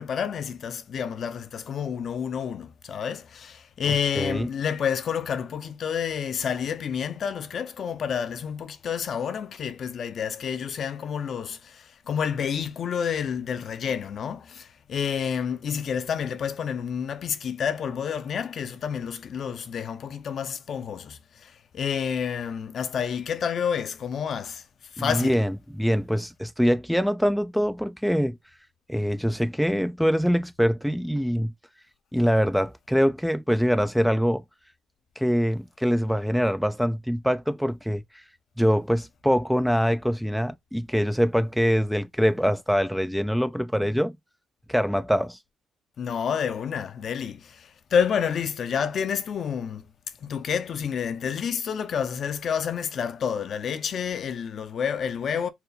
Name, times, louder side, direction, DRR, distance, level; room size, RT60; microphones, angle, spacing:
voice 1, 0.0-24.6 24.9-25.4 46.0-49.9 50.2-55.5, left 7 dB, 60° left, 0.7 m, -29 dB
voice 2, 4.2-4.5 25.0-28.4 28.9-31.5 32.1-34.4 35.2-38.2 38.6-44.2 44.7-45.4, equal, ahead, 0.3 m, -24 dB
4.3 x 2.2 x 3.9 m
cardioid pair, 90°, 0 cm